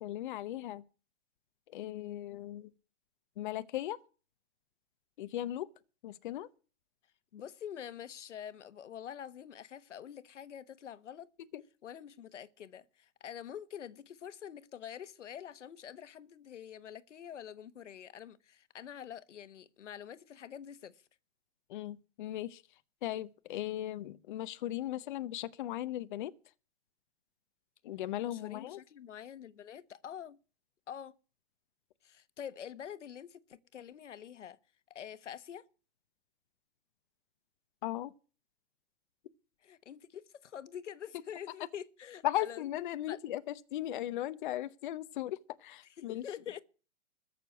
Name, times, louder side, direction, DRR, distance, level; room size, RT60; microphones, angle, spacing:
voice 1, 0.0-0.8 1.7-2.7 3.4-4.0 5.2-5.7 6.0-6.5 11.5-11.6 21.7-22.6 23.0-26.3 27.8-28.8 37.8-38.1 42.2-46.2, left 13 dB, 45° left, 0.8 m, -37 dB
voice 2, 7.3-11.3 11.8-21.0 28.2-30.4 30.9-31.1 32.0-34.6 34.9-35.6 39.6-42.6 43.1-43.2 46.0-46.6, left 9 dB, 80° left, 1.3 m, -46 dB
14.0 x 6.8 x 9.6 m
hypercardioid pair, 155°, 35 cm